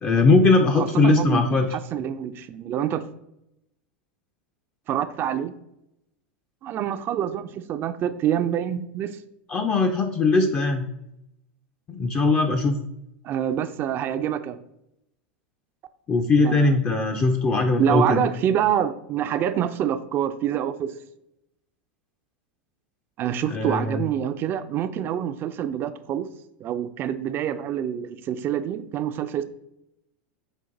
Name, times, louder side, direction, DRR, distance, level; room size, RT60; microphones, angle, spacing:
voice 1, 0.0-1.7 9.5-10.9 11.9-12.8 16.1-18.2 23.5-24.0, left 3 dB, 30° left, 3 dB, 0.5 m, -20 dB
voice 2, 0.8-1.4 1.7-3.1 4.9-5.5 6.6-9.2 13.2-14.6 16.4-16.7 17.6-20.9 23.2-26.3 26.6-29.4, right 10 dB, 40° right, 11 dB, 0.4 m, -26 dB
5.2 x 2.5 x 3.8 m, 0.83 s
hypercardioid pair, 110°, 6 cm